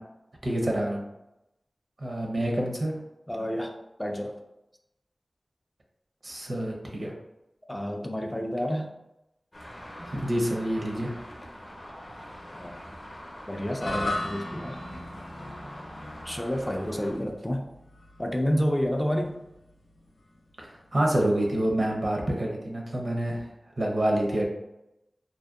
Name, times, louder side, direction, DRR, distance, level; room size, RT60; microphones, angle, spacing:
voice 1, 0.4-1.0 2.0-3.0 6.2-7.1 10.0-11.2 20.6-23.5 23.8-24.5, right 1 dB, 60° right, -1 dB, 0.6 m, -27 dB
voice 2, 3.3-4.4 7.7-8.9 12.6-12.7 13.5-14.8 16.3-17.6 18.2-19.4, equal, 15° left, 2 dB, 0.3 m, -29 dB
Traffic noise roadway noise, 9.5-17.2, equal, 45° left, 0.7 m, -44 dB
sound 1, 13.8-22.2, left 1 dB, 90° left, 0.5 m, -39 dB
2.6 x 2.1 x 2.3 m, 0.90 s
wide cardioid pair, 50°, 0 cm